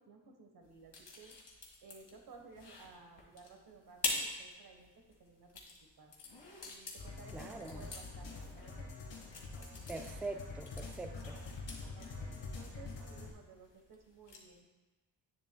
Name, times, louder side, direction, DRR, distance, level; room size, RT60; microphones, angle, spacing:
voice 1, 0.0-1.3 1.8-4.9 5.2-5.6 6.0-6.1 6.6-9.0 11.9-14.7, right 4 dB, 55° right, 3 dB, 1.3 m, -57 dB
sound 1, 0.6-14.6, left 3 dB, 55° left, 1.9 m, -46 dB
sound 2, 7.0-13.3, left 3 dB, 75° left, 1.6 m, -46 dB
voice 2, 7.3-7.9 9.9-11.4, right 3 dB, 5° right, 5 dB, 0.4 m, -43 dB
9.0 x 7.3 x 2.3 m, 1.2 s
cardioid pair, 80°, 46 cm